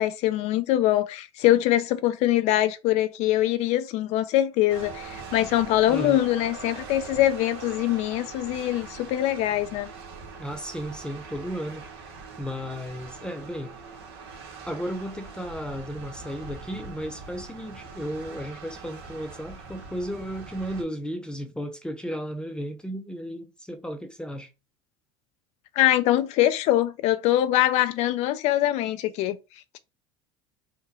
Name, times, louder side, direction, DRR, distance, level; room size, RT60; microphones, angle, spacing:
voice 1, 0.0-9.9 25.8-29.4, left 13 dB, 55° left, 0.4 m, -23 dB
sound 1, 4.7-20.8, right 5 dB, 80° right, 1.1 m, -42 dB
voice 2, 5.9-6.2 10.4-11.9 12.4-13.7 14.7-24.5, equal, 5° left, 0.5 m, -34 dB
3.7 x 2.2 x 4.1 m
supercardioid pair, 95°, 13 cm